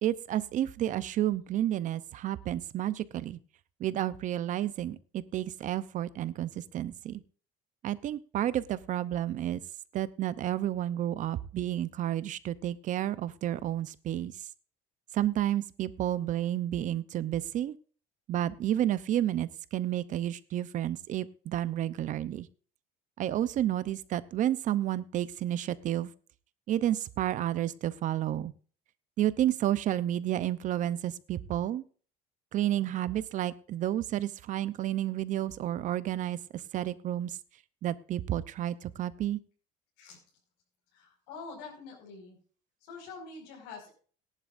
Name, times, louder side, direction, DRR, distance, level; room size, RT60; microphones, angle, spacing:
voice 1, 0.0-3.4 3.8-7.2 7.8-9.6 9.9-14.4 15.1-17.8 18.3-22.5 23.2-26.1 26.7-28.5 29.2-31.8 32.5-36.4 36.7-37.4 37.8-39.4, right 12 dB, 45° right, 16 dB, 0.7 m, -31 dB
voice 2, 40.9-42.4 42.8-43.9, left 4 dB, 85° left, -3 dB, 5.4 m, -45 dB
18.0 x 11.0 x 2.6 m, 0.41 s
cardioid pair, 135°, 18 cm